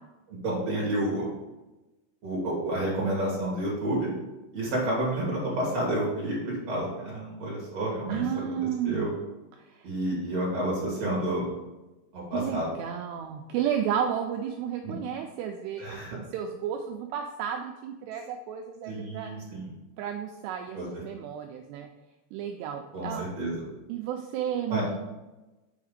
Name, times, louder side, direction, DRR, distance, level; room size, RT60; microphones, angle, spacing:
voice 1, 0.3-1.3 2.2-4.1 4.5-8.2 8.5-8.6 8.8-9.1 9.8-11.5 12.1-12.7 14.8-14.9 15.8-16.2 18.9-19.7 20.7-20.9 22.9-23.7 24.7-24.8, right 1 dB, 50° right, -5 dB, 2.2 m, -30 dB
voice 2, 8.1-9.1 9.7-9.9 12.3-19.3 20.0-21.9 22.3-23.3 23.9-24.9, right 9 dB, 90° right, 4 dB, 2.4 m, -32 dB
7.2 x 4.7 x 5.0 m, 1.1 s
omnidirectional pair, 5.4 m